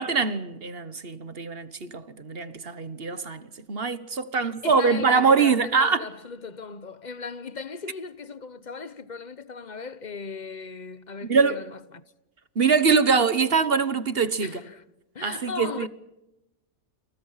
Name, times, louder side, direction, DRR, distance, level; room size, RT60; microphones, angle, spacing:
voice 1, 0.0-6.1 11.2-11.6 12.5-14.6 15.2-15.9, right 5 dB, 40° right, 1.4 m, -23 dB
voice 2, 4.3-12.0 14.4-14.8 15.1-15.9, left 5 dB, 35° left, 1.0 m, -37 dB
29.5 x 28.5 x 5.8 m
omnidirectional pair, 1.6 m